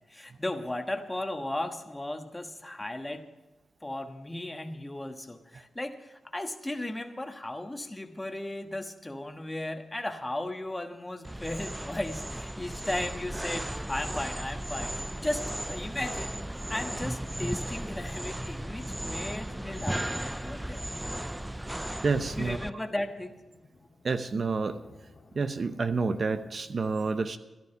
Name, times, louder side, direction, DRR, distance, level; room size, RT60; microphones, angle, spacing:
voice 1, 0.0-3.2 3.8-16.3 16.7-20.8 22.3-23.4, left 1 dB, 20° left, 5 dB, 1.3 m, -36 dB
sound 1, 11.2-22.7, right 1 dB, 10° right, 0.3 m, -35 dB
sound 2, 12.9-26.7, left 3 dB, 50° left, 1.9 m, -56 dB
voice 2, 22.0-22.6 24.0-24.8 25.3-27.4, right 4 dB, 55° right, 9 dB, 0.7 m, -29 dB
13.0 x 11.5 x 5.5 m, 1.1 s
cardioid pair, 50°, 0 cm